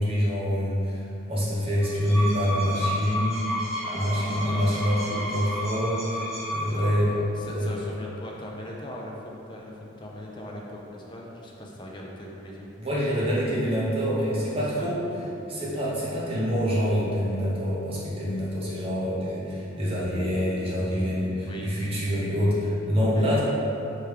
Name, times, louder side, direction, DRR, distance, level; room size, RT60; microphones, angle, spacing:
voice 1, 0.0-3.4 3.9-7.2 7.5-7.7 12.8-15.0 15.5-23.4, equal, 30° right, -7 dB, 0.9 m, -26 dB
sound 1, 1.8-7.2, equal, 5° right, 1.2 m, -32 dB
voice 2, 3.8-4.8 6.7-12.7 13.5-13.6 14.5-15.4 21.5-21.7 22.9-23.4, left 1 dB, 25° left, -3 dB, 0.4 m, -40 dB
3.5 x 3.2 x 4.8 m, 2.8 s
head